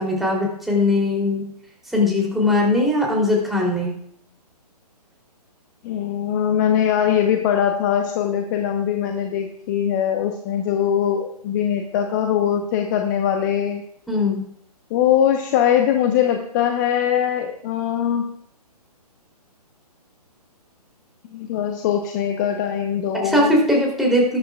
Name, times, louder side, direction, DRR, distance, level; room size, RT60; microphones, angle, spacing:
voice 1, 0.0-1.5 1.9-3.9 14.1-14.5 23.1-24.4, left 2 dB, ahead, -3 dB, 3.2 m, -20 dB
voice 2, 5.8-13.8 14.9-18.3 21.3-23.5, left 9 dB, 30° left, 5 dB, 1.0 m, -21 dB
20.0 x 10.0 x 2.4 m, 0.68 s
figure-of-eight pair, 135°, 21 cm